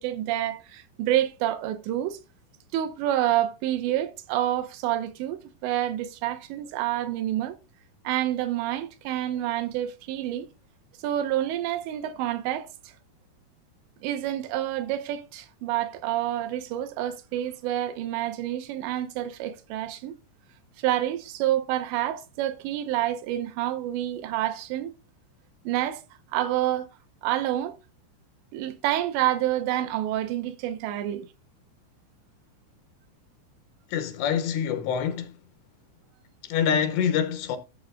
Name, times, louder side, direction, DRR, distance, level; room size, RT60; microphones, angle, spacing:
voice 1, 0.0-2.2 2.7-7.6 8.0-10.5 11.0-12.7 14.0-20.1 20.8-24.9 25.7-26.0 26.3-26.9 27.2-27.8 28.5-31.3, right 13 dB, 85° right, 3.0 m, -28 dB
voice 2, 33.9-35.4 36.4-37.6, left 8 dB, 80° left, 2.9 m, -26 dB
14.0 x 7.1 x 2.5 m
omnidirectional pair, 5.1 m